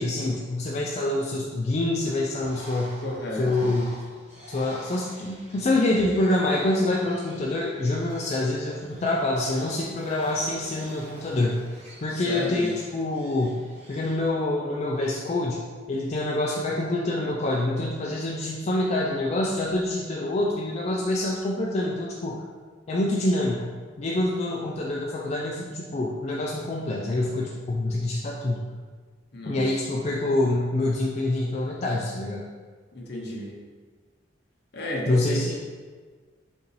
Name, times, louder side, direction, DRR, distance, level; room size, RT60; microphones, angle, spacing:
voice 1, 0.0-3.0 3.4-3.9 4.5-11.6 12.0-13.6 13.9-15.6 15.9-22.4 22.9-23.7 24.0-28.6 29.5-32.4 35.1-35.5, left 2 dB, 35° left, -3 dB, 0.4 m, -26 dB
Bird, 2.3-14.3, equal, 35° right, 1.0 m, -47 dB
voice 2, 3.0-3.7 12.1-12.7 29.3-29.7 32.9-33.5 34.7-35.4, left 1 dB, 60° left, -1 dB, 0.8 m, -32 dB
5.2 x 2.5 x 3.2 m, 1.5 s
head